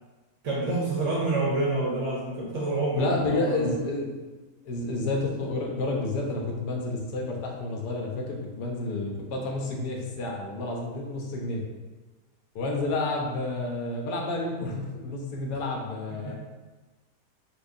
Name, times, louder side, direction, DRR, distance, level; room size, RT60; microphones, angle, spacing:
voice 1, 0.4-3.9 16.2-16.3, right 2 dB, 60° right, -4 dB, 0.9 m, -28 dB
voice 2, 3.0-4.1 4.6-11.6 12.5-16.3, left 2 dB, 75° left, 0 dB, 1.2 m, -30 dB
4.4 x 2.3 x 2.6 m, 1.2 s
omnidirectional pair, 1.8 m